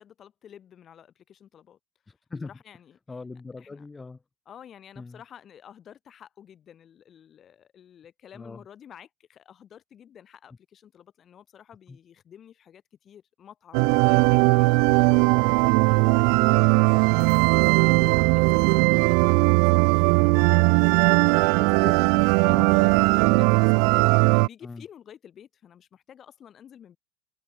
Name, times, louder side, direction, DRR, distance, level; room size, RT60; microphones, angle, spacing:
voice 1, 0.0-1.8 2.4-3.0 3.6-3.9 4.5-21.9 22.7-27.0, left 9 dB, 30° left, 7.1 m, -50 dB
voice 2, 3.1-4.2 5.0-5.2 8.3-8.6 11.9-12.0 14.9-15.1 17.9-18.2 21.1-23.6 24.6-24.8, left 3 dB, 10° left, 2.4 m, -41 dB
sound 1, 13.7-24.5, right 40 dB or more, 65° right, 0.5 m, -19 dB
cardioid pair, 160°, 0 cm